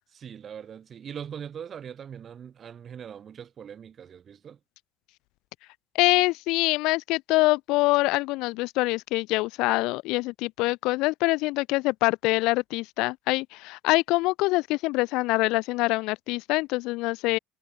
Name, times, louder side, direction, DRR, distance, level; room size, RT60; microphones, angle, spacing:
voice 1, 0.1-4.6, right 8 dB, 40° right, 5.3 m, -41 dB
voice 2, 5.9-17.4, left 22 dB, 75° left, 0.3 m, -25 dB
supercardioid pair, 100°, 0 cm